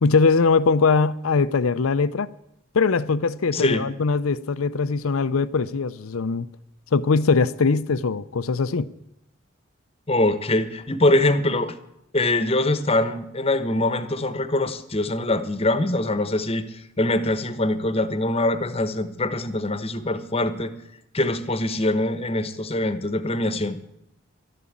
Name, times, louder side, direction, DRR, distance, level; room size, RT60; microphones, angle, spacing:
voice 1, 0.0-2.3 2.7-6.5 6.9-8.9, left 4 dB, 85° left, 0.6 m, -21 dB
voice 2, 3.5-3.8 10.1-11.7 12.1-16.7 17.0-20.7 21.1-23.8, left 1 dB, 30° left, 1.0 m, -23 dB
12.5 x 11.0 x 8.6 m
head